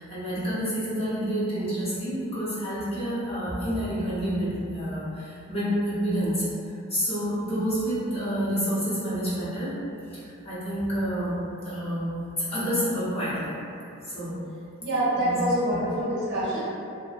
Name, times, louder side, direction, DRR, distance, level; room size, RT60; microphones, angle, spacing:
voice 1, 0.0-9.8 10.1-11.3 11.6-12.1 12.4-13.5 14.0-14.4 15.2-15.4, equal, 25° left, -11 dB, 0.8 m, -28 dB
voice 2, 14.8-16.6, right 1 dB, 55° right, -9 dB, 0.8 m, -25 dB
2.7 x 2.1 x 2.4 m, 2.5 s
head